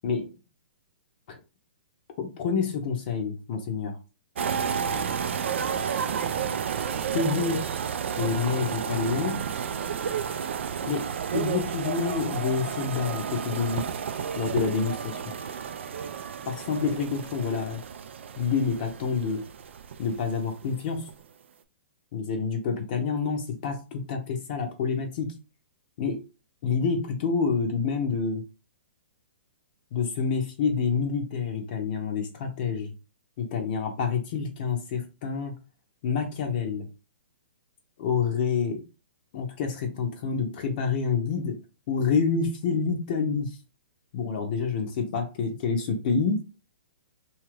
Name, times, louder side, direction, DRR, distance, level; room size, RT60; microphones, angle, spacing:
voice 1, 0.0-0.3 1.3-1.4 2.2-4.0 7.1-7.7 8.2-9.4 10.8-13.8 14.4-15.2 16.5-17.8 18.4-19.4 20.0-21.0 22.1-25.3 26.0-26.2 26.6-28.4 29.9-32.9 33.4-35.6 36.0-36.9 38.0-38.8 39.3-41.6 41.9-43.6 44.1-46.4, left 5 dB, 50° left, 0.6 m, -28 dB
sound 1, 4.4-20.6 20.9-21.2, right 7 dB, 70° right, 0.3 m, -31 dB
2.7 x 2.5 x 3.1 m
hypercardioid pair, 130°, 7 cm